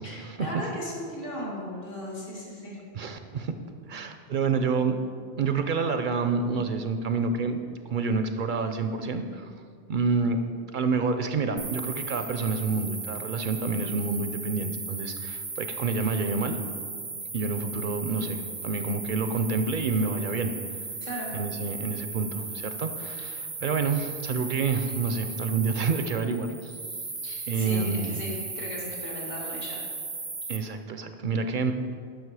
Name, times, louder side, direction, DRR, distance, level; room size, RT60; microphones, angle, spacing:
voice 1, 0.0-2.8 21.0-21.3 27.2-29.8, equal, 65° left, -4 dB, 2.4 m, -37 dB
voice 2, 2.9-3.5 3.9-5.0 5.4-7.6 7.9-9.5 9.9-10.5 10.7-16.6 17.3-20.5 21.3-26.8 27.5-28.2 30.5-31.7, right 4 dB, 60° right, 8 dB, 0.7 m, -28 dB
sound 1, 11.6-30.6, right 3 dB, 25° right, 0.4 m, -37 dB
11.5 x 6.1 x 4.8 m, 2.1 s
omnidirectional pair, 1.0 m